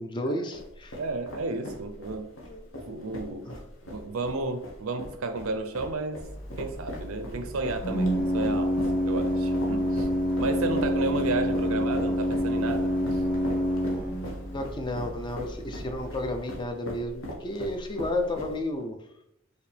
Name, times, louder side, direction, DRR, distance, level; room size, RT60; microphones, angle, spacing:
voice 1, 0.0-1.0 2.5-2.7 3.4-3.6 14.5-19.0, left 1 dB, 20° left, 6 dB, 0.4 m, -32 dB
sound 1, 0.5-18.8, left 1 dB, 65° left, 1.0 m, -40 dB
voice 2, 0.9-2.3 2.9-6.2 6.6-10.1 10.4-13.2, right 3 dB, 75° right, 8 dB, 0.5 m, -32 dB
Organ, 6.2-16.4, equal, 40° left, 1.5 m, -28 dB
4.9 x 2.6 x 3.3 m, 0.82 s
head